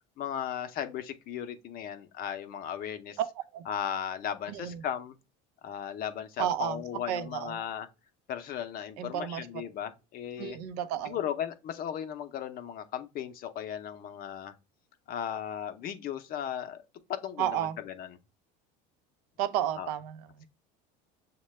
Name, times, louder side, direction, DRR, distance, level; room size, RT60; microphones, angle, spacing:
voice 1, 0.2-3.2 3.7-5.2 5.6-7.9 8.3-10.6 11.0-14.5 15.1-16.8 17.1-18.1 19.8-19.9, left 9 dB, 50° left, 0.6 m, -36 dB
voice 2, 4.5-4.8 6.4-6.8 7.1-7.6 9.0-9.5 10.4-11.2 17.4-17.8 19.4-20.5, right 11 dB, 90° right, 0.5 m, -32 dB
6.4 x 2.2 x 3.1 m
supercardioid pair, 115°, 20 cm